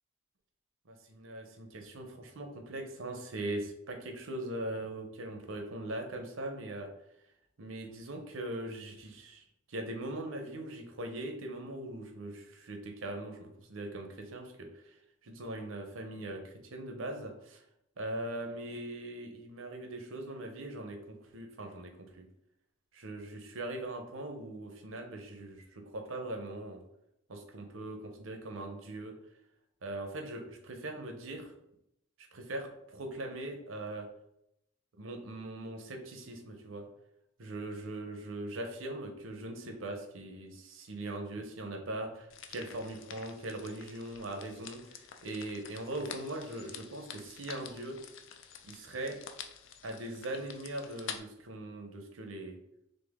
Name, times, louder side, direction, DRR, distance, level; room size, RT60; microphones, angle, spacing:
voice 1, 0.9-6.9 7.6-15.0 15.2-17.6 18.0-22.3 22.9-26.8 27.3-29.1 29.8-31.5 32.3-34.1 34.9-36.9 37.4-48.0 48.6-49.2 49.8-52.6, right 1 dB, 80° right, 4 dB, 0.8 m, -41 dB
sound 1, 42.3-51.2, left 7 dB, 65° left, 0.4 m, -48 dB
4.2 x 3.2 x 3.6 m, 0.80 s
head